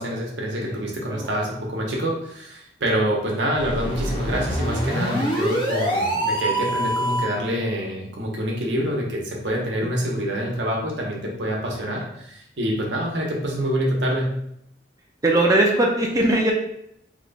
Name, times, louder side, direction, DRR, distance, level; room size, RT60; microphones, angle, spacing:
voice 1, 0.0-14.3, equal, 90° right, -2 dB, 0.9 m, -26 dB
voice 2, 0.6-1.3 15.2-16.5, right 1 dB, 20° right, -1 dB, 0.4 m, -20 dB
sound 1, 3.5-7.4, equal, 30° left, 0.7 m, -25 dB
2.9 x 2.2 x 4.0 m, 0.76 s
head